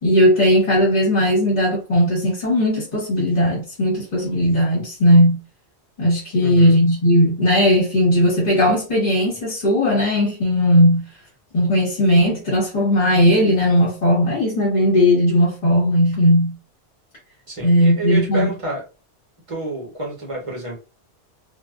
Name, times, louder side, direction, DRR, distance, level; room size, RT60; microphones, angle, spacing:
voice 1, 0.0-5.4 6.0-11.0 11.5-16.5 17.6-18.5, equal, 40° left, 1.0 m, -17 dB
voice 2, 6.4-6.8 17.5-18.8 19.5-20.8, right 2 dB, 30° right, 1.0 m, -28 dB
2.4 x 2.3 x 2.3 m
omnidirectional pair, 1.1 m